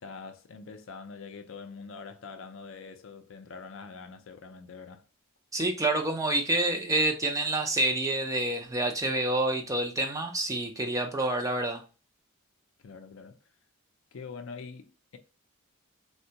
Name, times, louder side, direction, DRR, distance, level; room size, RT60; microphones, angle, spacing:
voice 1, 0.0-5.1 12.8-13.4 14.1-15.2, left 5 dB, 60° left, 0.4 m, -44 dB
voice 2, 5.5-11.8, right 2 dB, 15° right, 0.4 m, -28 dB
3.5 x 2.2 x 2.8 m
head